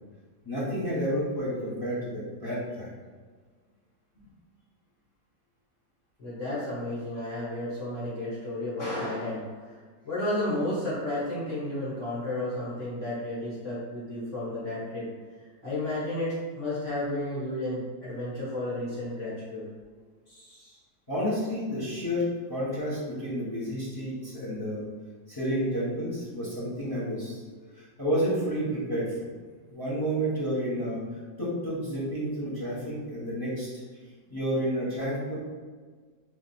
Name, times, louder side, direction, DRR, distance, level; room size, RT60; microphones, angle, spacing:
voice 1, 0.4-2.9 21.1-24.9 25.3-27.4 27.8-29.3 29.7-31.0 31.4-33.7 34.3-35.4, equal, 15° left, -8 dB, 1.0 m, -30 dB
voice 2, 6.2-9.8 10.0-15.1 15.6-19.6 20.3-20.8, left 1 dB, 45° left, -9 dB, 1.5 m, -32 dB
3.2 x 3.1 x 4.2 m, 1.5 s
omnidirectional pair, 1.9 m